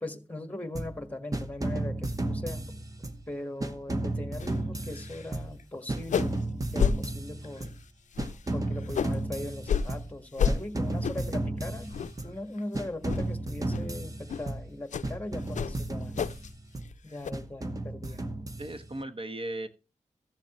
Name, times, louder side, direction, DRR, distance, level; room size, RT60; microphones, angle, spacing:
voice 1, 0.0-2.6 3.3-6.4 6.7-7.7 8.5-11.9 12.2-16.2 17.0-18.3, left 1 dB, 10° left, 1.6 m, -39 dB
sound 1, 0.7-1.0 1.3-3.3 3.6-5.6 5.9-7.8 8.2-10.2 10.5-12.4 12.7-14.7 15.0-16.9 17.3-19.0, right 2 dB, 30° right, 1.0 m, -34 dB
sound 2, 4.4-4.6 4.9-5.3 5.6-5.7 6.0-6.4 6.8-7.0 7.4-7.7 8.1-9.2 9.6-9.9 10.4-10.6 11.0-11.3 11.8-12.3 12.6-12.8 13.1-13.3 13.7-13.9 14.3-14.5 14.9-15.1 15.5-16.5 16.8-17.3, left 7 dB, 80° left, 0.4 m, -30 dB
voice 2, 18.6-19.7, right 1 dB, 50° right, 1.2 m, -37 dB
14.5 x 7.3 x 3.1 m
wide cardioid pair, 75°, 12 cm